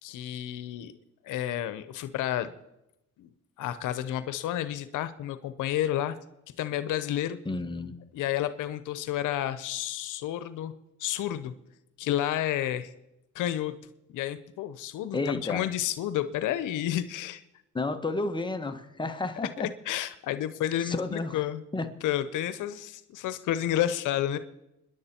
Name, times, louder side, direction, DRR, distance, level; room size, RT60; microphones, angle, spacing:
voice 1, 0.0-0.9 1.2-2.5 3.2-3.3 3.6-6.2 6.6-7.4 8.1-10.7 11.0-11.5 12.0-12.9 13.3-13.7 14.1-17.4 19.6-21.6 22.0-24.4, left 12 dB, 85° left, 12 dB, 0.8 m, -30 dB
voice 2, 7.4-7.9 15.1-15.6 17.7-19.7 20.8-21.4 21.7-21.9, left 3 dB, 15° left, 7 dB, 1.4 m, -31 dB
26.0 x 10.5 x 4.4 m, 0.91 s
cardioid pair, 90°, 30 cm